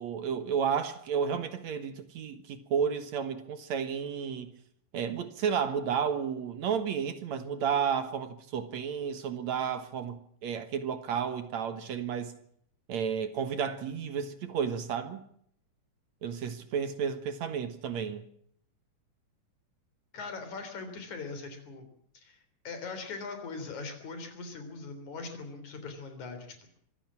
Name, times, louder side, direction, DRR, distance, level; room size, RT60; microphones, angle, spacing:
voice 1, 0.0-4.5 4.9-12.3 12.9-15.2 16.2-18.2, right 7 dB, 65° right, 2.5 m, -32 dB
voice 2, 20.1-21.9 22.1-22.4 22.6-26.7, left 4 dB, 65° left, 4.7 m, -41 dB
25.0 x 15.5 x 7.4 m
omnidirectional pair, 3.7 m